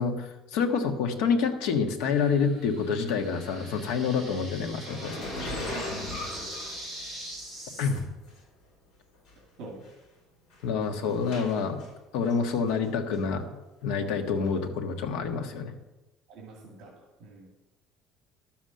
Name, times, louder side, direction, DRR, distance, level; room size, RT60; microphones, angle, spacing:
voice 1, 0.0-5.5 7.8-8.1 10.6-11.8 12.1-13.5 13.8-15.7, left 5 dB, 75° left, 5 dB, 1.5 m, -28 dB
sound 1, 2.1-8.0, right 1 dB, 5° left, 4.9 m, -42 dB
sound 2, 4.9-7.4 8.3-8.4 9.3-9.4 9.6-9.9 10.5-11.9 12.3-12.9 13.1-13.2 14.4-14.5, left 2 dB, 55° left, 4.6 m, -38 dB
voice 2, 5.3-6.5 9.6-9.8 16.3-16.9 17.2-17.5, right 3 dB, 55° right, -1 dB, 2.5 m, -44 dB
12.5 x 7.3 x 6.5 m, 1.0 s
cardioid pair, 175°, 0 cm